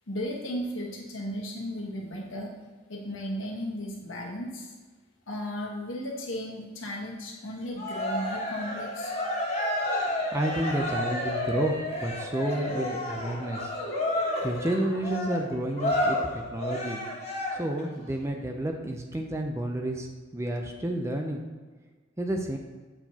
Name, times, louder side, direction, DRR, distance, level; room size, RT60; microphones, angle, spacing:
voice 1, 0.1-2.5 2.9-4.7 5.3-9.3, equal, 80° left, -1 dB, 1.2 m, -35 dB
Cheering, 7.8-17.8, left 1 dB, 30° left, 1.3 m, -30 dB
voice 2, 10.3-13.6 14.4-17.0 17.6-20.1 20.3-21.4 22.2-22.6, right 1 dB, 15° right, 3 dB, 0.4 m, -30 dB
7.9 x 4.5 x 2.8 m, 1.4 s
head